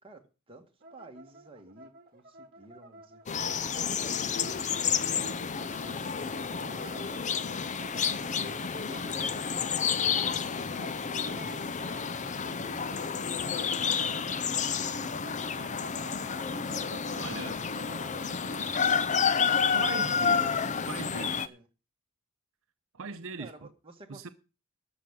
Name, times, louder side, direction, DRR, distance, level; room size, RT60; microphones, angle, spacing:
voice 1, 0.0-4.6 5.7-7.2 8.2-10.3 11.7-15.2 15.9-17.1 17.8-19.4 20.1-21.2 21.4-21.7 23.4-24.3, right 2 dB, 25° right, 2.0 m, -53 dB
sound 1, 0.8-19.5, right 1 dB, 45° right, 2.0 m, -49 dB
sound 2, 3.3-21.5, left 6 dB, 35° left, 0.6 m, -30 dB
sound 3, 7.4-12.4, right 1 dB, ahead, 2.1 m, -57 dB
voice 2, 17.1-17.6 19.7-21.5 22.9-23.5 24.1-24.3, right 4 dB, 65° right, 0.8 m, -40 dB
13.5 x 4.8 x 8.9 m
head